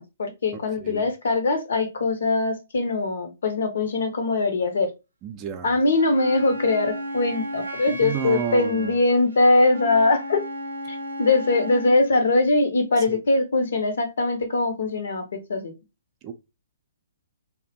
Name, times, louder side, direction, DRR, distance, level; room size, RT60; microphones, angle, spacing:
voice 1, 0.0-4.9 5.6-10.4 10.9-15.2 15.5-15.7, left 2 dB, 65° left, 0.7 m, -22 dB
voice 2, 5.2-5.7 8.0-9.0 13.1-13.2 16.2-16.3, right 8 dB, 30° right, 0.4 m, -31 dB
Wind instrument woodwind instrument, 5.9-12.0, equal, 85° right, 0.5 m, -34 dB
2.4 x 2.1 x 2.8 m
figure-of-eight pair, 125°, 0 cm